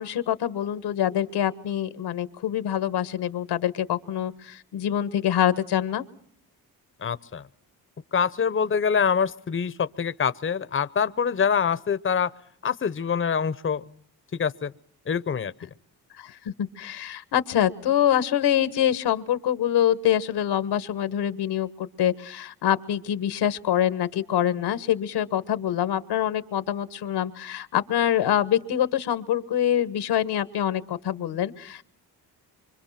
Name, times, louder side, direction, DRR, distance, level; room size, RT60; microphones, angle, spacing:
voice 1, 0.0-6.1 16.2-31.8, left 10 dB, 85° left, 13 dB, 1.5 m, -25 dB
voice 2, 7.0-7.4 8.1-12.3 12.6-13.8 14.4-14.7 15.1-15.5, left 6 dB, 30° left, 15 dB, 0.9 m, -25 dB
24.5 x 24.5 x 5.9 m, 0.62 s
cardioid pair, 70°, 39 cm